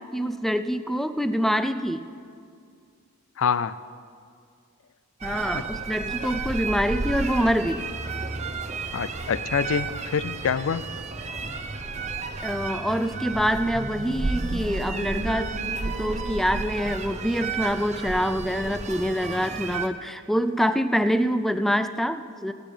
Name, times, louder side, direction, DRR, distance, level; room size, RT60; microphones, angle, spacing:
voice 1, 0.1-2.1 5.2-7.8 12.4-15.6 15.9-22.5, equal, ahead, 11 dB, 0.4 m, -25 dB
voice 2, 3.4-3.8 8.9-10.8, left 6 dB, 60° left, 17 dB, 0.4 m, -26 dB
sound 1, 5.2-19.9, right 3 dB, 30° right, 0.7 m, -32 dB
27.5 x 9.2 x 5.1 m, 2.3 s
head